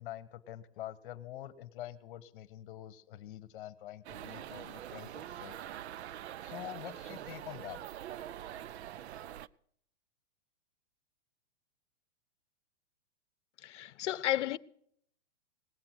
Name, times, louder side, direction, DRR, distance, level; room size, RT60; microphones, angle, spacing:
voice 1, 0.0-5.6 6.4-7.8, left 13 dB, 45° left, 1.2 m, -46 dB
sound 1, 4.0-9.5, right 11 dB, 65° right, 0.6 m, -44 dB
voice 2, 13.6-14.6, left 13 dB, 75° left, 0.7 m, -32 dB
19.0 x 7.9 x 6.0 m
hypercardioid pair, 155°, 36 cm